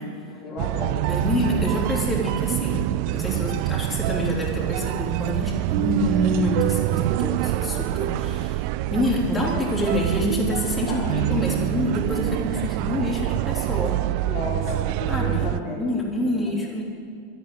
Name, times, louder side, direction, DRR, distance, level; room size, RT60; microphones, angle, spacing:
voice 1, 0.3-1.3 10.9-11.1 14.2-16.6, left 2 dB, 25° left, -5 dB, 2.2 m, -34 dB
sound 1, 0.6-15.6, right 15 dB, 45° right, 0.3 m, -25 dB
voice 2, 1.1-14.1 15.1-15.5 15.8-16.8, left 1 dB, 5° left, -4 dB, 3.4 m, -27 dB
13.5 x 7.2 x 9.8 m, 2.2 s
figure-of-eight pair, 90°, 0 cm